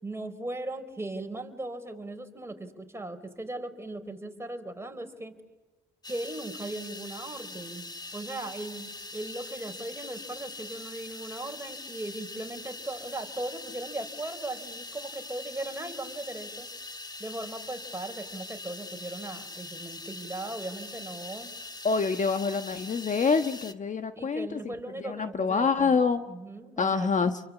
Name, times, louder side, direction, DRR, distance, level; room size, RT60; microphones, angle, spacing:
voice 1, 0.0-5.3 6.1-16.7 17.2-21.5 24.2-26.0 26.3-27.1, right 2 dB, 15° right, 5 dB, 4.4 m, -38 dB
sound 1, 6.0-23.7, left 2 dB, 20° left, 1.5 m, -42 dB
voice 2, 21.8-24.7 25.0-26.2 26.8-27.4, left 5 dB, 40° left, 8 dB, 1.3 m, -26 dB
29.5 x 23.5 x 8.5 m, 1.2 s
cardioid pair, 90°, 20 cm